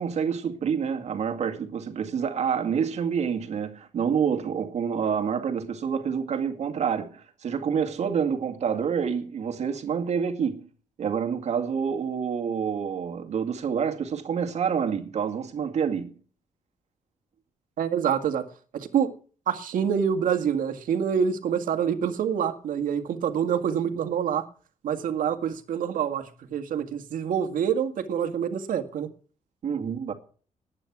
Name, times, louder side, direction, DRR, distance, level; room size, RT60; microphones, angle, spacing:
voice 1, 0.0-10.7 11.0-16.2 29.6-30.1, right 7 dB, 55° right, 2.2 m, -27 dB
voice 2, 17.8-18.4 18.7-19.1 19.5-24.4 24.8-29.1, right 8 dB, 80° right, 2.0 m, -26 dB
19.5 x 9.8 x 6.1 m
wide cardioid pair, 175°, 14 cm